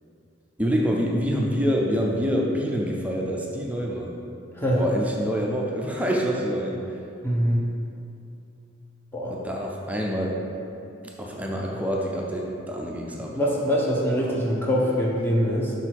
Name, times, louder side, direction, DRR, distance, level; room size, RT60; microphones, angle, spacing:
voice 1, 0.6-4.2 4.7-6.8 9.3-10.4 11.0-13.3 14.2-14.3, equal, 5° right, -2 dB, 0.5 m, -26 dB
voice 2, 7.2-7.7 9.1-9.3 13.3-15.7, equal, 10° left, -4 dB, 0.8 m, -23 dB
6.1 x 3.8 x 4.6 m, 2.7 s
head